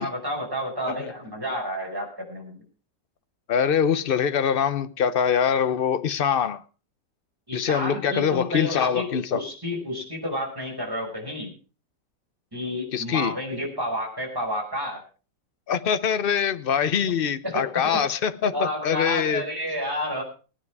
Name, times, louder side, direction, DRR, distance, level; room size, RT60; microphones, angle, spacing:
voice 1, 0.0-2.6 7.5-11.5 12.5-15.0 17.4-18.0 18.5-20.2, equal, 10° right, 5.4 m, -30 dB
voice 2, 3.5-6.6 7.5-9.4 12.9-13.4 15.7-19.4, left 7 dB, 55° left, 0.6 m, -24 dB
20.0 x 9.6 x 4.7 m
omnidirectional pair, 1.9 m